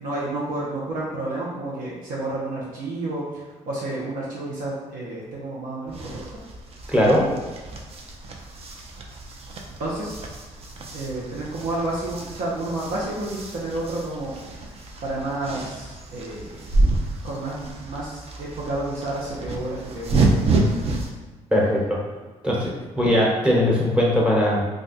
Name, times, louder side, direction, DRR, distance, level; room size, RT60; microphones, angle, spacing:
voice 1, 0.0-6.4 9.8-10.2 10.9-14.6 15.0-16.7 17.2-21.0, right 2 dB, 80° right, -6 dB, 0.8 m, -30 dB
sound 1, 5.9-21.1, right 2 dB, 45° right, 0.5 m, -28 dB
voice 2, 6.9-7.3 21.5-22.0 22.4-22.7 23.0-24.7, left 1 dB, 5° right, -4 dB, 1.0 m, -19 dB
2.5 x 2.2 x 4.0 m, 1.2 s
cardioid pair, 85°, 14 cm